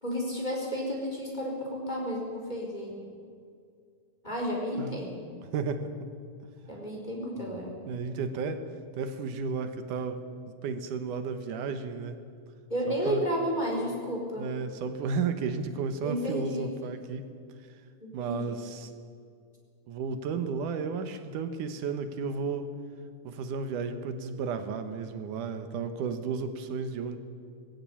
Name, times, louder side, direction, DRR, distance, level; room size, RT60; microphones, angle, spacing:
voice 1, 0.0-3.0 4.2-5.1 6.7-7.7 12.7-14.5 16.0-16.7 18.0-18.6, equal, 15° left, -1 dB, 4.5 m, -32 dB
voice 2, 5.5-6.1 7.4-7.6 7.9-8.6 8.9-10.2 10.6-12.2 12.9-13.2 14.4-17.3 18.1-18.9 19.9-22.7 23.2-27.2, right 5 dB, 80° right, 9 dB, 2.7 m, -33 dB
20.0 x 16.5 x 8.6 m, 2.3 s
omnidirectional pair, 3.6 m